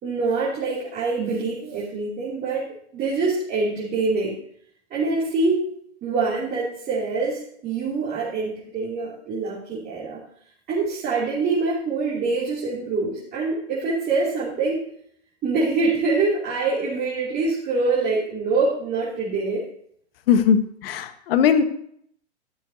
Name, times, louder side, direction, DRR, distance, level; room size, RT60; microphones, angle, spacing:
voice 1, 0.0-4.4 4.9-5.7 6.0-10.2 10.7-14.8 15.4-19.6, right 3 dB, 30° right, -6 dB, 2.9 m, -25 dB
voice 2, 20.8-21.6, left 7 dB, 55° left, 9 dB, 1.4 m, -18 dB
13.0 x 12.0 x 2.8 m, 0.66 s
hypercardioid pair, 115°, 34 cm